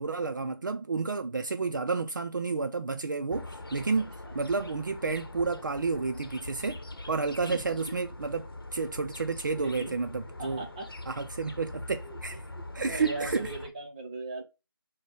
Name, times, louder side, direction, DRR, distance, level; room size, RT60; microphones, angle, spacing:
voice 1, 0.0-6.8 7.1-8.5 8.7-10.6 11.1-12.4 12.8-13.5, right 4 dB, 55° right, 0.4 m, -31 dB
sound 1, 3.3-13.7, left 2 dB, 75° left, 0.8 m, -43 dB
voice 2, 4.0-4.3 7.4-7.9 9.6-10.0 10.4-10.9 12.0-12.2 12.5-14.4, right 2 dB, 20° right, 0.7 m, -39 dB
4.1 x 2.1 x 4.3 m
figure-of-eight pair, 165°, 12 cm